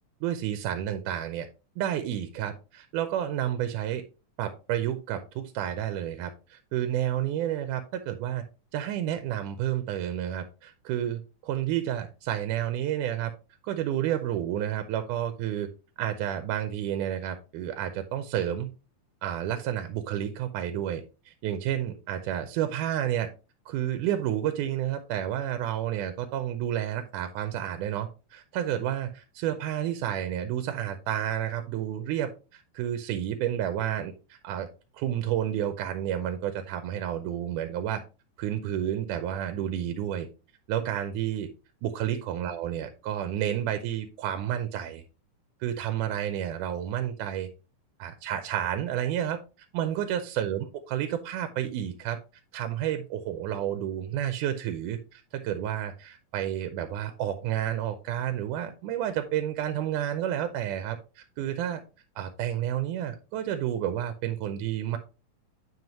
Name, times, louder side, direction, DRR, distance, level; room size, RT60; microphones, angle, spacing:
voice 1, 0.2-1.5 1.8-4.0 4.4-8.4 8.7-13.3 13.6-15.7 16.0-18.7 19.2-23.3 23.7-34.7 34.9-38.0 38.4-40.3 40.7-41.5 41.8-45.0 45.6-47.5 48.0-49.4 49.7-52.2 52.5-61.8 62.2-65.0, right 11 dB, 80° right, 8 dB, 2.1 m, -30 dB
7.8 x 5.4 x 2.9 m, 0.31 s
omnidirectional pair, 3.7 m